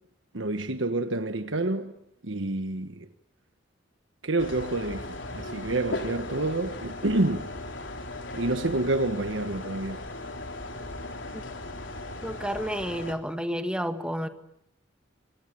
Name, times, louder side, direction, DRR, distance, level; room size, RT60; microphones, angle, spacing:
voice 1, 0.3-1.9 2.2-3.1 4.2-7.5 8.3-10.0, right 2 dB, 80° right, 1.4 m, -28 dB
sound 1, 4.4-13.1, left 2 dB, 80° left, 3.6 m, -37 dB
voice 2, 12.2-14.3, equal, 5° right, 1.8 m, -31 dB
27.0 x 26.0 x 7.8 m
head